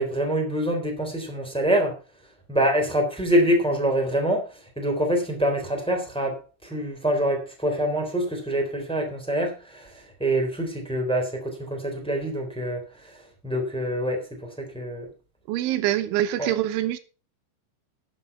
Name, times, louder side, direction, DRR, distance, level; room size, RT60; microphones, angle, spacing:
voice 1, 0.0-2.0 2.5-15.1 16.4-16.5, right 1 dB, ahead, 2.4 m, -25 dB
voice 2, 15.5-17.0, right 13 dB, 80° right, 3.4 m, -25 dB
12.0 x 8.0 x 5.5 m
omnidirectional pair, 5.5 m